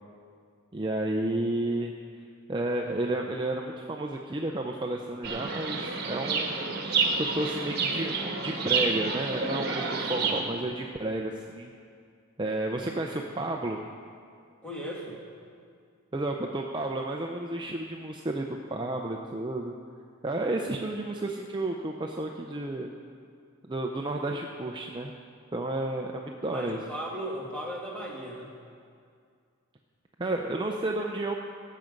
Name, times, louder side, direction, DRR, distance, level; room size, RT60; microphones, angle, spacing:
voice 1, 0.7-1.9 2.5-6.6 7.2-9.8 10.1-11.7 12.4-13.8 16.1-19.7 20.2-22.9 23.7-25.1 25.5-26.8 30.2-31.3, right 2 dB, 20° right, 1 dB, 0.6 m, -31 dB
Chirp tweet, 5.2-10.4, right 4 dB, 50° right, 1.4 m, -29 dB
voice 2, 14.6-15.2 26.5-28.5, equal, 5° left, -4 dB, 2.0 m, -36 dB
18.0 x 7.6 x 5.2 m, 2.2 s
head